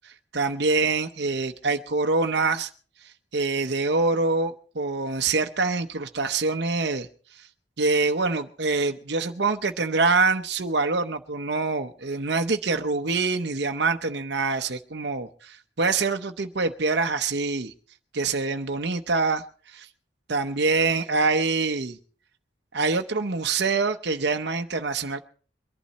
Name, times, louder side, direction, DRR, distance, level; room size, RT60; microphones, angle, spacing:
voice 1, 0.3-2.7 3.3-7.1 7.8-17.7 18.1-19.4 19.7-19.9 20.3-22.0 22.7-25.2, right 3 dB, 70° right, 6 dB, 0.9 m, -25 dB
23.0 x 11.5 x 4.2 m, 0.41 s
head